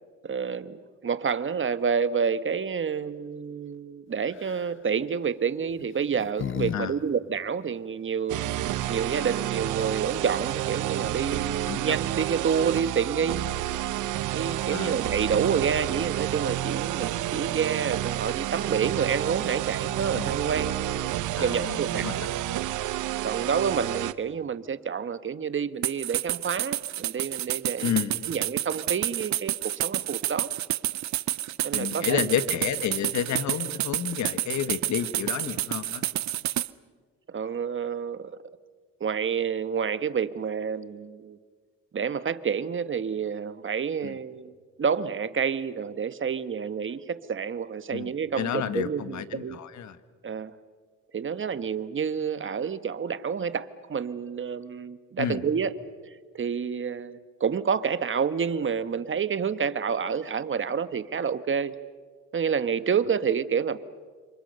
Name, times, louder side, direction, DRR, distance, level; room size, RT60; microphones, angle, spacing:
voice 1, 0.2-8.4 8.9-13.5 14.3-22.3 23.2-27.9 28.3-30.5 31.6-32.3 37.3-38.4 39.0-41.4 41.9-49.6 50.2-50.5 51.1-55.7 56.3-61.7 62.3-63.8, right 6 dB, 40° right, 13 dB, 1.3 m, -29 dB
sound 1, 4.3-4.7 5.7-6.8 7.1-7.2 8.8-8.9 9.1-9.6, left 9 dB, 40° left, 0.7 m, -34 dB
sound 2, 8.3-24.1, right 14 dB, 90° right, 0.9 m, -30 dB
voice 2, 11.7-12.0 14.7-14.9 20.1-20.3 21.4-22.3 27.8-28.2 31.7-36.0 44.0-44.2 47.9-50.0 55.2-55.5, left 9 dB, 65° left, 12 dB, 1.6 m, -30 dB
sound 3, 25.8-36.7, right 13 dB, 65° right, 0.8 m, -29 dB
30.0 x 26.5 x 6.8 m, 1.5 s
cardioid pair, 90°, 30 cm